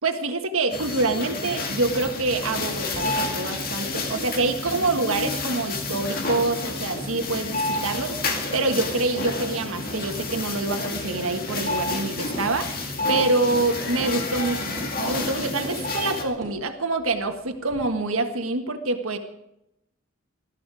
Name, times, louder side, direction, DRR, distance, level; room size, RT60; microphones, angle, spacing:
voice 1, 0.0-14.7 15.0-19.2, right 3 dB, 85° right, 5 dB, 1.6 m, -26 dB
sound 1, 0.7-16.2, left 2 dB, 45° left, 2.4 m, -30 dB
sound 2, 2.9-5.6 5.8-6.6 6.9-7.0 7.3-7.4 7.7-7.8 8.4-8.5 8.8-8.9 9.2-9.3 9.6-10.0 10.3-10.4 10.7-10.8 11.5-11.6 11.9-12.0 12.3-12.5 13.1-13.3 13.6-13.7 14.0-14.1 14.8-14.9 15.2-15.8 16.3-17.9, right 1 dB, 15° right, 7.6 m, -41 dB
19.5 x 13.5 x 4.9 m, 0.84 s
head